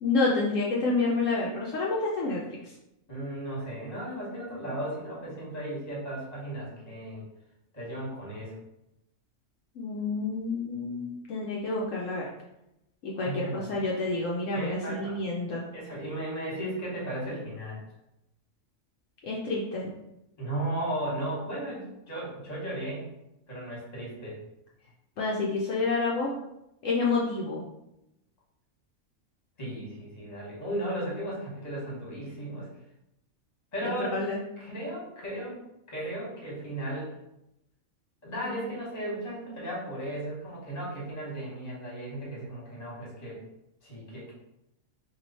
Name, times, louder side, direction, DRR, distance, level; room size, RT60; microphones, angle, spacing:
voice 1, 0.0-2.7 9.8-12.2 13.0-15.7 19.2-19.9 25.2-26.3 26.8-27.6 33.8-34.4 38.4-38.6, left 3 dB, 70° left, -4 dB, 1.0 m, -29 dB
voice 2, 3.1-7.2 7.7-8.5 13.2-13.8 14.5-15.2 15.7-17.8 20.4-23.1 23.5-24.4 29.6-32.7 33.7-34.2 34.6-35.6 35.9-37.1 38.2-43.4 43.8-44.3, right 1 dB, 30° left, -5 dB, 1.4 m, -35 dB
3.1 x 2.7 x 4.0 m, 0.87 s
omnidirectional pair, 1.4 m